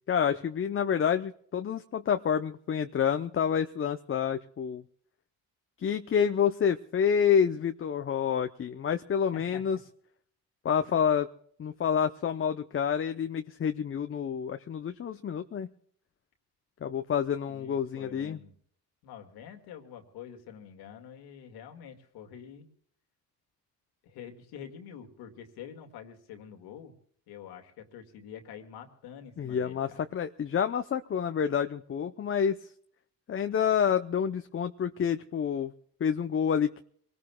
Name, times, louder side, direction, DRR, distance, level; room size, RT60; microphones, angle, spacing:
voice 1, 0.1-4.8 5.8-9.8 10.6-11.3 11.6-15.7 16.8-18.4 29.4-32.7 33.3-35.7 36.0-36.8, left 7 dB, 35° left, 8 dB, 0.7 m, -28 dB
voice 2, 9.3-9.7 17.5-18.6 19.0-22.7 24.0-26.9 27.3-30.1, left 8 dB, 80° left, 5 dB, 2.2 m, -47 dB
24.5 x 19.0 x 2.3 m, 0.62 s
supercardioid pair, 75°, 38 cm